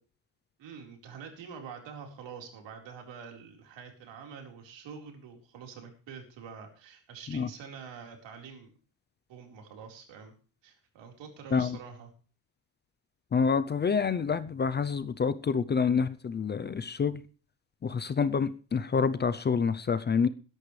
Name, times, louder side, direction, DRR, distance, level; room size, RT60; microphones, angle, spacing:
voice 1, 0.6-8.7 9.3-10.3 10.6-12.1, right 6 dB, 80° right, 2 dB, 4.4 m, -46 dB
voice 2, 13.3-17.2 17.8-20.3, left 5 dB, 25° left, 13 dB, 0.5 m, -27 dB
21.5 x 11.0 x 3.3 m, 0.38 s
cardioid pair, 170°, 43 cm